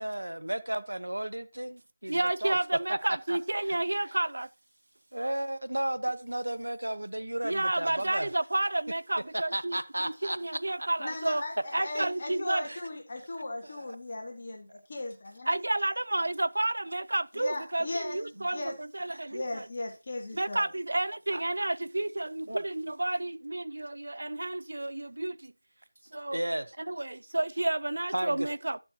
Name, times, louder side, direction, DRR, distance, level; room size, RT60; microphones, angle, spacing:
voice 1, 0.0-2.6 2.9-3.4 3.7-3.8 4.1-4.2 5.1-8.3 9.3-10.4 10.8-10.9 12.0-12.1 12.6-12.8 13.6-14.0 18.4-18.5 19.1-19.3 21.3-21.4 22.5-22.6 26.3-26.7 28.1-28.5, right 1 dB, 80° right, 1.0 m, -34 dB
voice 2, 2.1-4.5 7.4-9.8 10.0-11.4 11.7-12.6 15.5-19.7 20.3-25.5 26.1-26.4 26.9-28.8, right 2 dB, 65° right, 0.4 m, -31 dB
voice 3, 11.0-15.5 17.3-18.2 18.5-18.8 19.3-20.7, left 2 dB, 40° left, 1.5 m, -37 dB
11.5 x 7.0 x 2.8 m
figure-of-eight pair, 165°, 0 cm